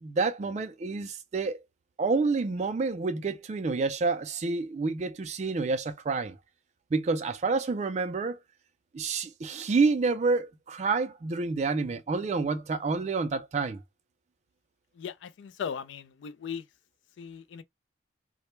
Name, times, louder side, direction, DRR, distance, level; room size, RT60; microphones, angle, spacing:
voice 1, 0.0-1.6 2.0-6.4 6.9-8.4 8.9-13.8, right 4 dB, 35° right, 0.3 m, -28 dB
voice 2, 15.0-16.6 17.2-17.6, left 7 dB, 70° left, 0.3 m, -38 dB
2.1 x 2.1 x 3.0 m
head